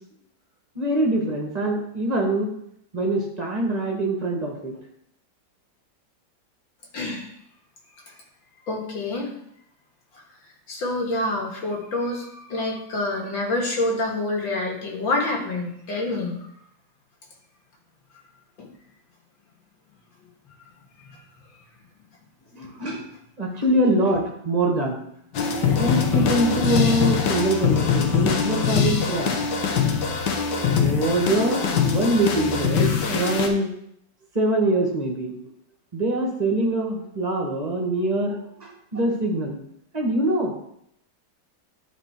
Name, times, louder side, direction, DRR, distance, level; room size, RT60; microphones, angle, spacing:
voice 1, 0.7-2.5 2.9-4.7 22.5-23.1 23.4-25.0 25.8-29.5 30.7-33.7 34.3-35.3 35.9-39.6 39.9-40.5, right 1 dB, 25° right, 0 dB, 1.2 m, -24 dB
voice 2, 6.9-7.3 8.7-9.3 10.7-16.5 18.6-18.7 21.0-21.1 25.3-25.6 26.5-26.6, left 2 dB, 90° left, 0 dB, 2.3 m, -27 dB
sound 1, 25.3-33.5, left 6 dB, 70° left, 1.5 m, -23 dB
11.0 x 3.8 x 4.4 m, 0.73 s
omnidirectional pair, 2.0 m